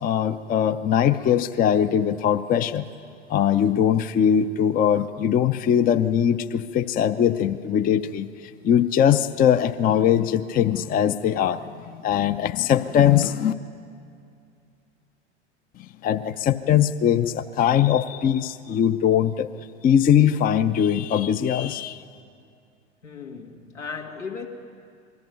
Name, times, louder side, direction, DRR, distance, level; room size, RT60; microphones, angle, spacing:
voice 1, 0.0-2.9 3.3-13.5 15.8-19.5 19.8-22.0, left 9 dB, 25° left, 9 dB, 0.6 m, -21 dB
voice 2, 23.0-24.5, left 5 dB, 85° left, 1 dB, 2.2 m, -36 dB
22.0 x 14.5 x 9.3 m, 2.4 s
figure-of-eight pair, 85°, 35 cm